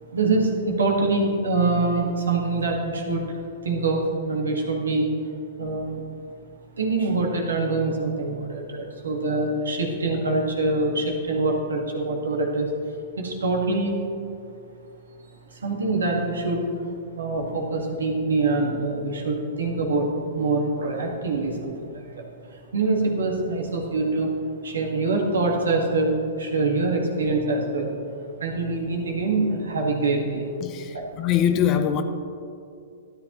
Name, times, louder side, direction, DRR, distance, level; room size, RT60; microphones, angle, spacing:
voice 1, 0.1-5.1 5.6-6.0 6.8-12.7 13.2-14.0 15.5-16.9 17.2-22.2 22.5-24.3 24.6-27.9 28.4-30.5 30.9-31.1, right 3 dB, 85° right, 1 dB, 1.8 m, -25 dB
voice 2, 30.6-32.0, left 9 dB, 35° left, 8 dB, 0.7 m, -23 dB
12.5 x 10.0 x 3.1 m, 2.4 s
hypercardioid pair, 125°, 0 cm